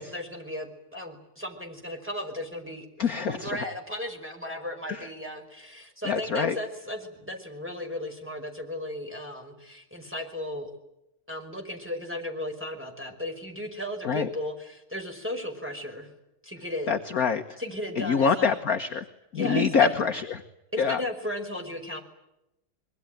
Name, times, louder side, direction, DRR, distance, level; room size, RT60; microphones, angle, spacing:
voice 1, 0.0-10.7 11.3-16.1 16.4-16.9 17.6-18.6 19.3-19.9 20.7-22.0, left 1 dB, 5° right, 3 dB, 5.1 m, -35 dB
voice 2, 3.0-3.6 4.9-5.1 6.1-6.5 14.0-14.3 16.9-17.4 18.0-19.0 19.3-20.4 20.8-21.0, left 5 dB, 50° left, 6 dB, 1.5 m, -25 dB
25.5 x 22.5 x 9.2 m, 0.87 s
omnidirectional pair, 2.3 m